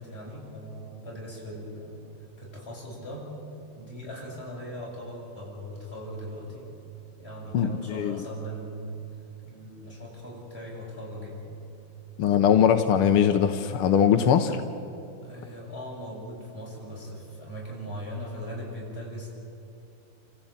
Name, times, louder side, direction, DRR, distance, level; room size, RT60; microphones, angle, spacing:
voice 1, 0.0-2.0 2.4-3.3 3.7-6.7 7.2-8.9 9.4-11.5 15.2-19.3, equal, 25° left, -4 dB, 7.6 m, -39 dB
voice 2, 7.5-8.2 12.2-14.6, left 8 dB, 90° left, 8 dB, 1.9 m, -21 dB
29.0 x 14.5 x 8.9 m, 2.8 s
omnidirectional pair, 2.4 m